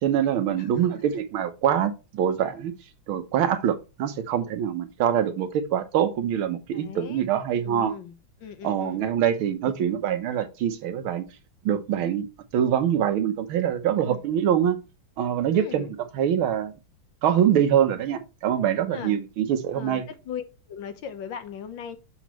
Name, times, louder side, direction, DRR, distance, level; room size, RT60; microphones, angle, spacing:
voice 1, 0.0-2.7 3.1-8.0 8.6-11.3 11.6-12.3 12.5-14.8 15.2-16.7 17.2-20.0, right 9 dB, 80° right, 1.8 m, -24 dB
voice 2, 6.7-7.2 7.6-8.1 8.4-9.0 14.0-14.2 15.5-15.9 18.9-19.2 19.7-22.0, left 8 dB, 70° left, 1.6 m, -38 dB
7.0 x 6.0 x 3.0 m
omnidirectional pair, 2.3 m